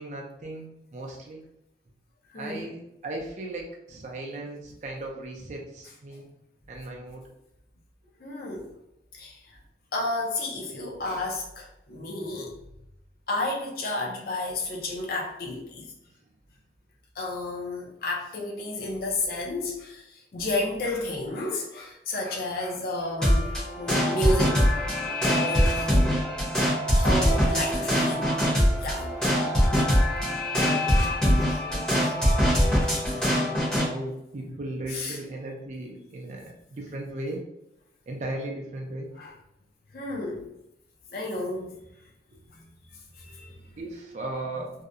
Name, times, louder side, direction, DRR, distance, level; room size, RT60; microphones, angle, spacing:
voice 1, 0.0-1.4 2.3-6.3 6.7-7.2 30.6-36.4 36.7-37.4 38.1-39.1 43.8-44.7, right 2 dB, 40° right, 0 dB, 0.4 m, -37 dB
voice 2, 2.3-2.7 8.2-8.7 9.1-9.6 9.9-12.5 13.3-15.9 17.2-24.6 25.3-26.2 26.9-28.4 28.8-29.1 30.3-30.7 34.9-35.2 39.1-39.3 39.9-40.5 41.1-41.8 42.5-42.6 43.2-43.5, left 2 dB, 55° left, -1 dB, 0.5 m, -32 dB
sound 1, 23.2-33.9, equal, 5° left, 0.7 m, -23 dB
2.7 x 2.0 x 2.4 m, 0.84 s
head